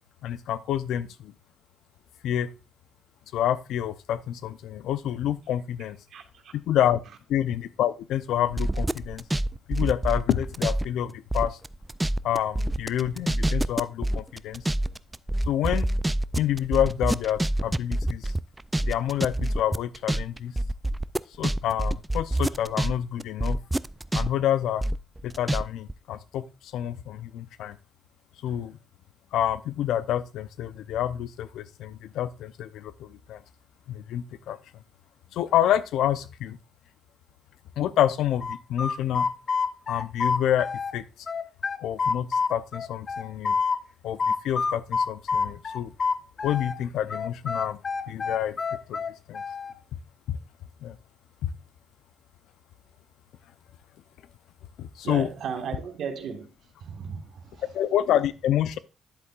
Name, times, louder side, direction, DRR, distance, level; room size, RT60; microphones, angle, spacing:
voice 1, 0.2-1.3 2.2-2.5 3.3-6.0 6.5-7.0 7.3-9.2 9.7-11.6 12.2-14.6 15.5-15.9 16.3-18.3 18.8-20.5 21.4-23.6 24.1-24.8 25.2-27.8 28.4-28.8 29.3-33.4 33.9-34.6 35.3-36.6 37.8-39.3 39.9-41.0 41.8-43.6 44.0-45.9 46.4-47.8 48.1-48.6 48.9-49.0 49.3-49.4 50.3-50.4 50.8-51.0 51.4-51.5 54.8-55.3 57.6-58.8, left 11 dB, 80° left, 0.6 m, -28 dB
voice 2, 6.1-6.5 55.0-56.5 56.8-57.5, right 6 dB, 70° right, 1.6 m, -35 dB
sound 1, 8.5-10.8 11.1-22.9 23.2-25.6 25.9-26.0, right 1 dB, 10° right, 0.3 m, -26 dB
sound 2, 38.4-40.9 41.3-43.8 44.2-46.8 47.1-49.7, left 5 dB, 45° left, 0.8 m, -27 dB
10.5 x 8.0 x 2.4 m
cardioid pair, 90°, 0 cm